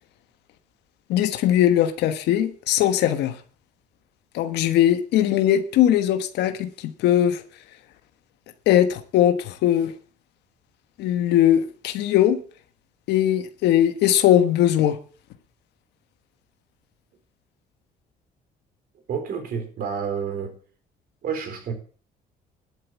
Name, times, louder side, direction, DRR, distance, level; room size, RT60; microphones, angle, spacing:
voice 1, 1.1-3.4 4.3-7.4 8.7-9.9 11.0-12.4 13.1-15.0, left 11 dB, 80° left, 1.4 m, -20 dB
voice 2, 19.1-20.5 21.2-21.7, right 6 dB, 60° right, 4.5 m, -29 dB
12.0 x 8.0 x 8.3 m
cardioid pair, 110°, 17 cm